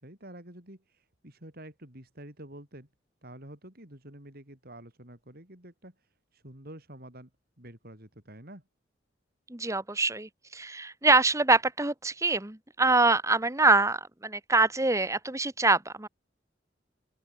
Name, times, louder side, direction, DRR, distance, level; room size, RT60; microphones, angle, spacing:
voice 1, 0.0-2.9 3.2-7.3 7.6-8.6, right 1 dB, 55° right, 5.3 m, -48 dB
voice 2, 9.5-16.1, right 3 dB, 15° right, 1.5 m, -25 dB
open air
head